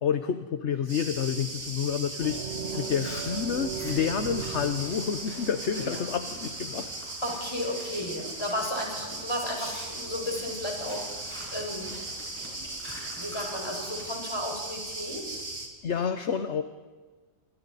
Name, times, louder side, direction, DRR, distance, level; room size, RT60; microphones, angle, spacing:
voice 1, 0.0-6.9 13.0-13.1 15.8-16.6, left 7 dB, 60° left, 9 dB, 1.2 m, -29 dB
sound 1, 0.9-15.7, right 2 dB, 75° right, 3.1 m, -38 dB
sound 2, 2.2-6.8, right 7 dB, 50° right, 1.4 m, -38 dB
Chewing mastication, 2.8-7.7 8.0-8.3 8.8-8.9 9.5-14.1, equal, 10° right, 6.9 m, -46 dB
voice 2, 7.2-11.9 12.5-12.8 13.2-15.4, left 1 dB, 20° left, 0 dB, 5.1 m, -34 dB
28.5 x 22.5 x 4.2 m, 1.4 s
omnidirectional pair, 1.4 m